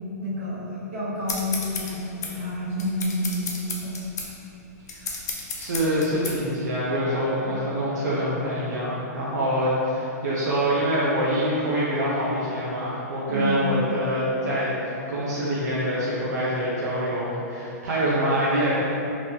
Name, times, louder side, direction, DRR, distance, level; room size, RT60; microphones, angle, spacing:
voice 1, 0.2-4.0 7.4-7.6 13.3-13.7, left 1 dB, 45° right, -11 dB, 1.4 m, -29 dB
sound 1, 1.3-6.4, left 4 dB, 75° left, 0.5 m, -33 dB
voice 2, 5.6-18.8, equal, 80° right, -8 dB, 0.5 m, -25 dB
3.0 x 2.2 x 2.7 m, 2.9 s
hypercardioid pair, 135°, 9 cm